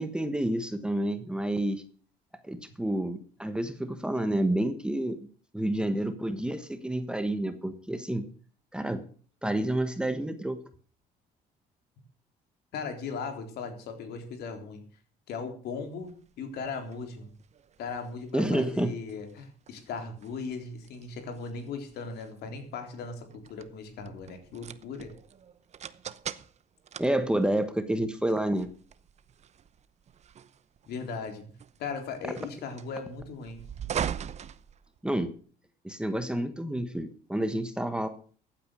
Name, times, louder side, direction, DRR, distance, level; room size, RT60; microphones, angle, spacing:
voice 1, 0.0-1.8 2.4-5.3 5.5-8.3 8.7-9.0 9.4-10.6 18.3-18.9 27.0-28.7 35.0-35.3 35.8-38.1, right 1 dB, 5° right, 10 dB, 1.3 m, -29 dB
voice 2, 12.7-14.8 15.3-17.3 17.8-25.1 30.9-31.5 31.8-33.6, left 4 dB, 70° left, 6 dB, 3.7 m, -38 dB
sound 1, 16.0-35.4, right 8 dB, 40° right, 0.8 m, -42 dB
15.0 x 9.0 x 6.5 m, 0.43 s
cardioid pair, 110°, 17 cm